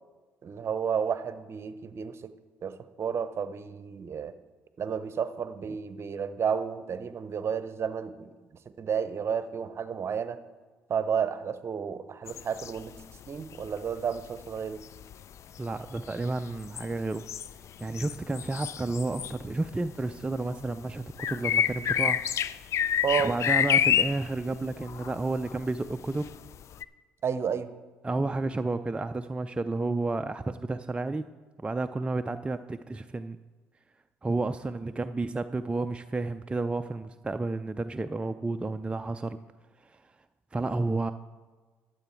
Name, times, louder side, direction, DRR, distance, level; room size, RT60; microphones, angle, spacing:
voice 1, 0.4-2.3 2.6-4.3 4.8-8.3 8.8-10.4 10.9-12.9 13.3-14.8 23.0-23.3 27.2-27.7, right 7 dB, 45° right, 12 dB, 0.8 m, -31 dB
sound 1, 12.3-13.3 13.5-19.9 20.1-26.8, left 9 dB, 55° left, 0.4 m, -29 dB
voice 2, 15.6-17.3 17.8-22.2 23.2-26.3 28.0-31.3 31.6-33.4 34.2-39.4 39.8-40.0 40.5-41.1, right 2 dB, 15° right, 8 dB, 0.4 m, -31 dB
13.0 x 7.8 x 4.5 m, 1.4 s
hypercardioid pair, 55°, 6 cm